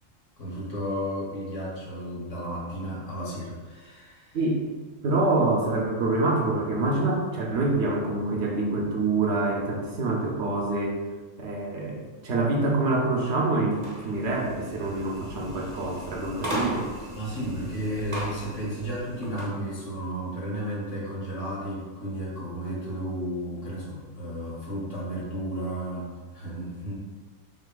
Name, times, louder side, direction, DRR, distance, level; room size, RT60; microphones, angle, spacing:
voice 1, 0.4-4.4 17.1-26.9, equal, 70° left, -5 dB, 1.6 m, -33 dB
voice 2, 4.3-4.6 5.0-11.0 11.4-16.9 19.3-19.5, right 2 dB, 65° right, -1 dB, 0.9 m, -26 dB
sound 1, 13.7-19.6, equal, 35° right, 0.8 m, -37 dB
6.2 x 2.7 x 2.3 m, 1.4 s
omnidirectional pair, 1.3 m